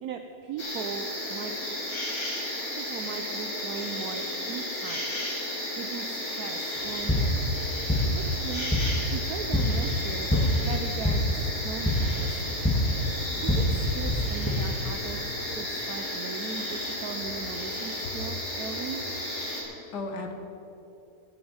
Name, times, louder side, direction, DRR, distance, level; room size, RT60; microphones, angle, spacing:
voice 1, 0.0-1.5 2.8-5.0 5.4-7.3 8.1-8.7 9.1-10.3 10.6-12.6 13.4-19.0, right 6 dB, 70° right, 5 dB, 1.2 m, -38 dB
sound 1, 0.6-19.6, left 1 dB, 60° left, 3.7 m, -33 dB
sound 2, 6.7-14.5, left 1 dB, 10° left, 2.0 m, -27 dB
voice 2, 19.6-20.3, left 3 dB, 90° left, 5 dB, 2.0 m, -37 dB
15.5 x 7.4 x 8.8 m, 2.8 s
omnidirectional pair, 1.7 m